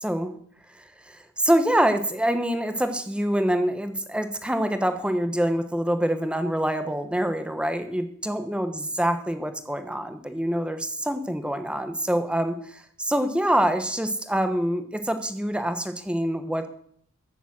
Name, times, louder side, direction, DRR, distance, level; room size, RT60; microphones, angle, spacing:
voice 1, 0.0-0.3 0.7-16.7, right 1 dB, 5° right, 8 dB, 1.2 m, -25 dB
14.5 x 7.2 x 7.7 m, 0.63 s
head